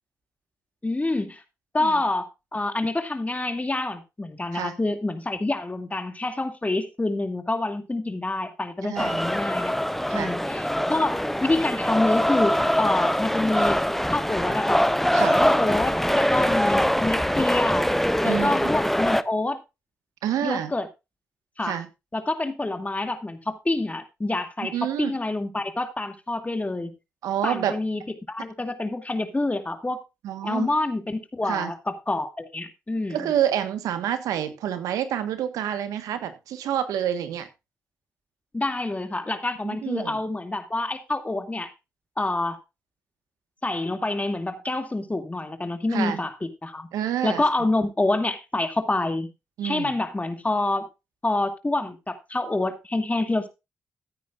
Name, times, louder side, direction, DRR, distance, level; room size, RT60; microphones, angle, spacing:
voice 1, 0.8-1.4 1.7-9.7 10.1-13.8 14.1-14.9 15.4-17.9 18.2-19.6 20.4-20.9 21.6-21.8 22.1-26.9 27.4-28.0 28.3-30.0 30.4-33.3 38.5-41.7 42.2-42.6 43.6-46.3 46.6-46.9 47.2-49.3 49.6-50.9 51.2-53.5, left 2 dB, 25° left, 2.5 m, -27 dB
voice 2, 8.8-9.2 10.1-10.4 15.1-15.4 18.2-18.7 20.2-20.7 21.6-21.9 24.6-25.1 27.2-27.8 30.2-30.7 31.4-31.7 33.1-37.5 39.6-40.2 45.9-46.2 46.9-47.4 49.6-49.9, right 10 dB, 85° right, 1.4 m, -28 dB
sound 1, 9.0-19.2, equal, 5° left, 0.9 m, -23 dB
15.5 x 9.1 x 2.5 m
supercardioid pair, 45°, 6 cm